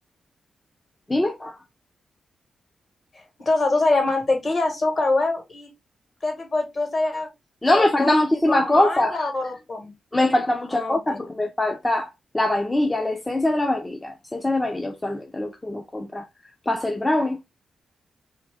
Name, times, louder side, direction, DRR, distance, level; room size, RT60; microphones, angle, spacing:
voice 1, 1.1-1.6 7.6-9.2 10.1-12.1 12.3-16.2 16.7-17.4, left 1 dB, 15° left, 0.4 m, -22 dB
voice 2, 3.4-5.7 6.2-7.3 7.7-9.9 10.7-11.2, left 2 dB, 40° left, 1.6 m, -24 dB
3.3 x 2.9 x 3.5 m
wide cardioid pair, 135°, 0 cm